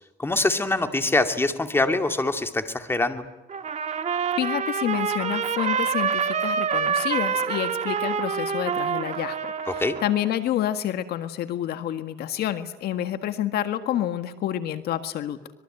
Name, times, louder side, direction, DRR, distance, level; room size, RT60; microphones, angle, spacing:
voice 1, 0.2-3.2 9.7-10.0, left 2 dB, 15° left, 6 dB, 2.4 m, -24 dB
Trumpet, 3.5-10.3, right 7 dB, 40° right, 2.1 m, -27 dB
voice 2, 4.4-9.4 10.0-15.4, left 11 dB, 70° left, 9 dB, 1.7 m, -28 dB
25.0 x 22.0 x 9.1 m, 1.0 s
cardioid pair, 110°, 17 cm